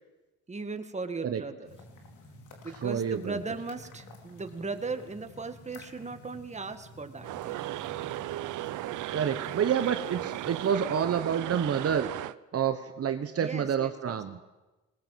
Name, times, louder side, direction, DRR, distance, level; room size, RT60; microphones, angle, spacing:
voice 1, 0.5-1.7 2.6-7.6 13.4-14.2, right 3 dB, 25° right, 8 dB, 1.9 m, -38 dB
sound 1, 1.6-10.7, left 1 dB, 85° left, 4.0 m, -51 dB
voice 2, 2.7-3.4 9.1-12.1 12.5-14.4, right 8 dB, 50° right, 8 dB, 1.3 m, -28 dB
sound 2, 7.2-12.3, right 15 dB, 80° right, 0.7 m, -36 dB
20.0 x 19.0 x 7.6 m, 1.1 s
cardioid pair, 90°, 30 cm